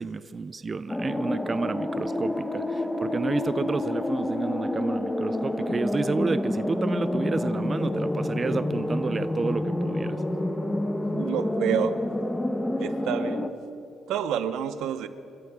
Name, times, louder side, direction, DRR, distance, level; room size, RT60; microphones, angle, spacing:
voice 1, 0.0-10.2, right 4 dB, 35° right, 14 dB, 0.4 m, -30 dB
sound 1, 0.9-13.5, left 1 dB, 10° left, 1.1 m, -28 dB
voice 2, 11.1-11.9 12.8-13.5 14.1-15.1, right 9 dB, 85° right, 11 dB, 0.9 m, -28 dB
28.0 x 14.0 x 3.6 m, 2.9 s
cardioid pair, 90°, 0 cm